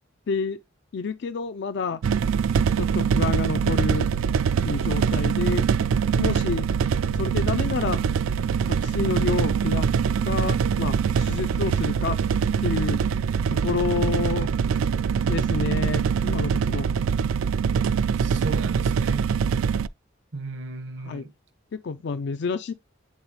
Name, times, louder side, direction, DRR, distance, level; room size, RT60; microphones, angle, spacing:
voice 1, 0.3-0.6 0.9-2.0 2.8-4.1 4.6-5.6 6.2-6.7 7.1-8.0 8.8-9.9 10.2-12.2 12.6-13.0 13.5-14.5 15.3-16.9 21.0-21.2 21.7-22.7, left 5 dB, 60° left, 0.4 m, -29 dB
sound 1, 2.0-19.9, right 6 dB, 85° right, 0.3 m, -23 dB
voice 2, 18.2-19.3 20.3-21.3, right 3 dB, 65° right, 1.0 m, -35 dB
9.5 x 4.0 x 2.9 m
head